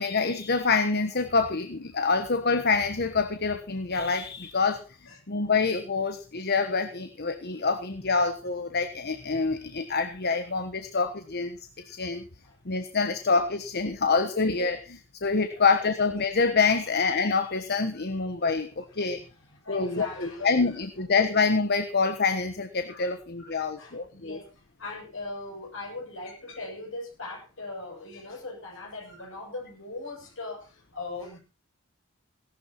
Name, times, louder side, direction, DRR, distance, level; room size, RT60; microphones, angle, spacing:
voice 1, 0.0-4.8 5.3-12.2 12.6-19.2 19.7-24.4, left 4 dB, 50° left, 9 dB, 1.2 m, -26 dB
voice 2, 19.0-20.5 22.9-23.1 23.4-31.4, left 2 dB, 65° left, 1 dB, 7.6 m, -40 dB
17.5 x 12.0 x 4.4 m, 0.34 s
head